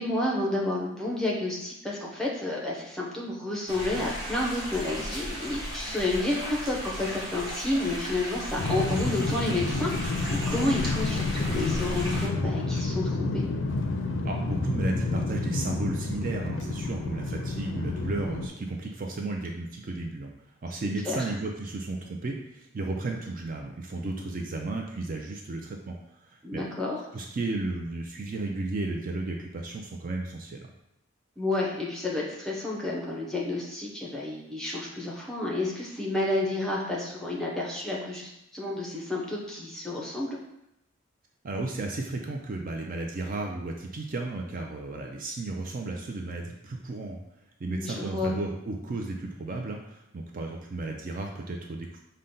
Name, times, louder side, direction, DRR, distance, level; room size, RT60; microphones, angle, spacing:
voice 1, 0.0-13.4 21.0-21.3 26.4-27.0 31.4-40.4 47.6-48.4, left 2 dB, ahead, -3 dB, 0.7 m, -30 dB
sound 1, 3.7-12.3, equal, 20° right, 1.0 m, -35 dB
sound 2, 8.6-18.5, left 3 dB, 65° left, 0.4 m, -30 dB
voice 2, 14.2-20.3 20.6-26.0 26.2-26.6 27.1-30.7 41.4-47.2 47.6-52.0, right 2 dB, 40° right, 1 dB, 0.4 m, -34 dB
5.3 x 2.2 x 3.7 m, 0.87 s
head